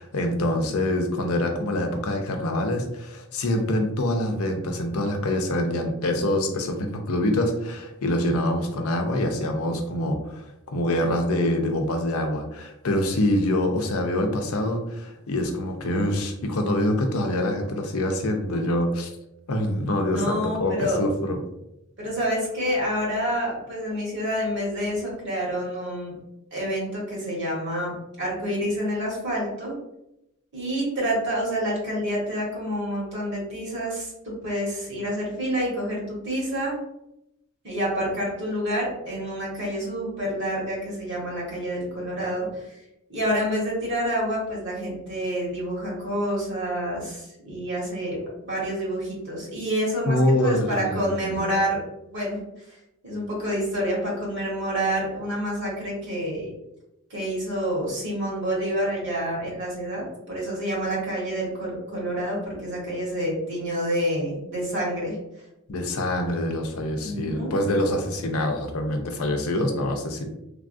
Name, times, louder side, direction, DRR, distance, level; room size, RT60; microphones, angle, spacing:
voice 1, 0.0-10.4 10.7-19.1 19.5-21.4 50.1-51.4 65.7-70.3, left 1 dB, 85° left, 3 dB, 0.5 m, -25 dB
voice 2, 20.1-21.0 22.0-26.1 26.5-29.7 30.5-34.1 34.4-36.7 37.6-42.5 43.1-48.2 48.4-51.8 52.1-52.4 53.0-56.5 57.1-65.2 67.0-67.5, equal, 55° right, -4 dB, 1.3 m, -28 dB
3.4 x 2.3 x 2.5 m, 0.86 s
head